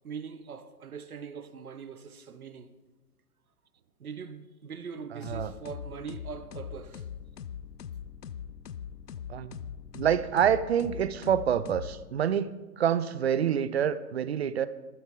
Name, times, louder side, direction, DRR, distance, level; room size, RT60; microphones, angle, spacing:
voice 1, 0.0-2.7 4.0-7.1, right 6 dB, 65° right, 1.0 m, -42 dB
sound 1, 5.2-12.4, left 8 dB, 80° left, 0.6 m, -42 dB
voice 2, 9.3-9.6 9.9-14.7, right 9 dB, 45° right, 0.6 m, -27 dB
15.0 x 12.0 x 3.7 m
figure-of-eight pair, 120°, 47 cm